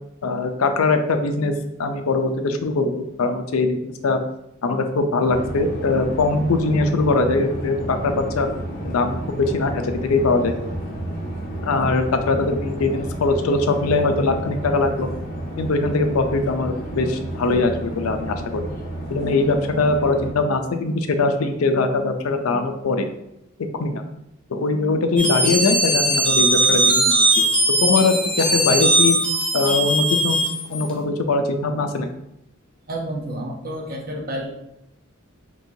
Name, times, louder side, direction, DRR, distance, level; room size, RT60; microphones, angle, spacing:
voice 1, 0.2-1.5 1.8-4.2 4.6-8.5 8.8-10.6 11.6-15.1 15.6-18.6 19.1-23.0 23.8-24.0 24.5-27.5 27.8-29.2 29.5-30.4 30.7-32.1, left 3 dB, 90° left, 7 dB, 0.5 m, -21 dB
sound 1, 5.3-20.3, right 1 dB, 45° left, 0.8 m, -31 dB
sound 2, 25.2-30.9, right 1 dB, 5° left, 0.7 m, -19 dB
voice 2, 32.9-34.5, right 1 dB, 45° right, -1 dB, 0.8 m, -30 dB
4.5 x 3.0 x 2.7 m, 0.83 s
head